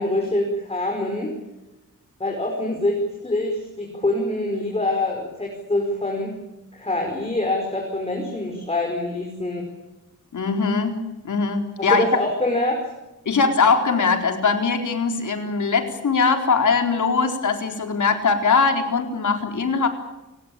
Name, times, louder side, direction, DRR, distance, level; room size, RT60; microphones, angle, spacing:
voice 1, 0.0-1.3 2.2-3.0 3.2-6.3 6.7-9.7 11.8-12.8, left 2 dB, 20° left, 0 dB, 5.1 m, -25 dB
voice 2, 10.3-12.1 13.3-19.9, left 4 dB, 70° left, 5 dB, 4.0 m, -21 dB
30.0 x 17.0 x 8.7 m, 1.0 s
wide cardioid pair, 145°, 31 cm